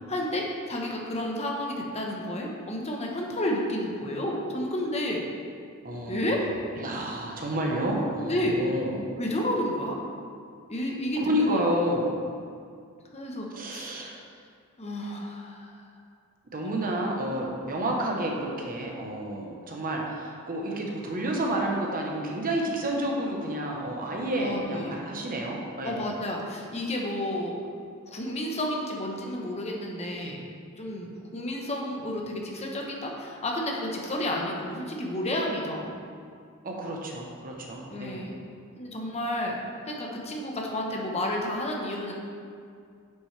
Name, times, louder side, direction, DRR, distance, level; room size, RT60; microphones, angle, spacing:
voice 1, 0.1-5.2 6.1-6.5 8.3-8.6 9.2-10.0 10.7-11.8 13.1-14.1 14.8-15.8 16.7-16.9 24.4-25.0 25.8-27.6 28.1-30.4 30.8-35.9 37.9-38.4 38.8-39.5 39.9-42.1, left 1 dB, 30° left, -1 dB, 1.0 m, -31 dB
voice 2, 5.8-6.4 6.8-9.1 11.2-12.1 13.5-14.2 16.5-26.1 36.6-38.2, right 1 dB, 40° right, 0 dB, 1.0 m, -30 dB
9.2 x 6.1 x 3.3 m, 2.3 s
head